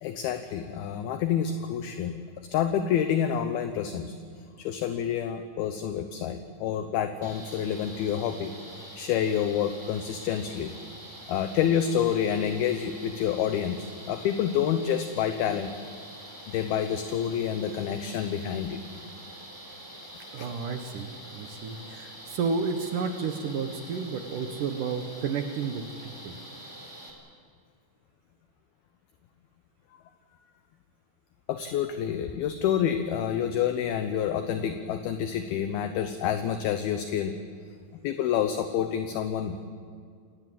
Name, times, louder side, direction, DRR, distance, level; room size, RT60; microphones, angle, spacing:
voice 1, 0.0-4.2 4.6-10.7 11.3-15.7 16.5-18.8 20.4-20.5 31.5-37.3 38.0-39.7, left 9 dB, 75° left, 8 dB, 2.5 m, -28 dB
sound 1, 7.2-27.1, right 1 dB, 5° right, 2.9 m, -45 dB
voice 2, 20.3-26.4, right 5 dB, 65° right, 6 dB, 2.2 m, -32 dB
28.5 x 18.0 x 7.7 m, 2.2 s
omnidirectional pair, 5.2 m